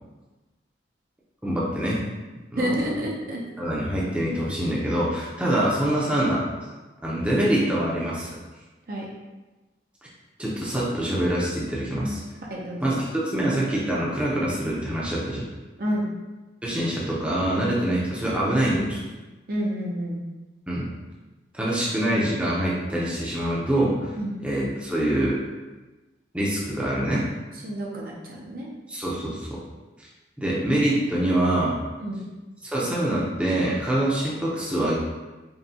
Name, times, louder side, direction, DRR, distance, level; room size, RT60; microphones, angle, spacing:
voice 1, 1.4-2.0 2.5-2.9 3.6-6.4 7.0-8.4 10.4-12.2 12.8-15.4 16.6-19.0 20.7-20.9 21.5-24.1 24.4-25.4 26.3-27.3 28.9-29.6 30.4-31.8 32.6-35.0, right 1 dB, 5° right, -6 dB, 0.6 m, -25 dB
voice 2, 2.6-3.4 8.9-9.1 12.5-12.9 15.8-16.1 19.5-20.2 24.2-24.4 27.6-28.7 32.0-32.2, equal, 50° right, -2 dB, 0.6 m, -29 dB
5.4 x 2.3 x 2.8 m, 1.2 s
head